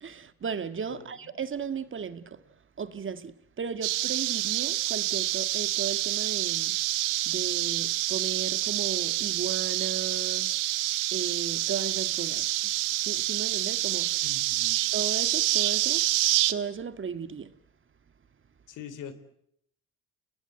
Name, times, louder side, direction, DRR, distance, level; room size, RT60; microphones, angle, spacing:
voice 1, 0.0-2.4 2.8-6.8 7.3-10.6 11.1-12.7 13.0-14.2 14.9-16.0 16.5-17.5, right 6 dB, 40° right, 1.9 m, -35 dB
voice 2, 0.9-1.2 14.2-14.8 18.7-19.1, left 8 dB, 70° left, 3.6 m, -43 dB
sound 1, 3.8-16.5, right 16 dB, 75° right, 1.5 m, -27 dB
29.5 x 19.5 x 8.0 m
supercardioid pair, 70°, 32 cm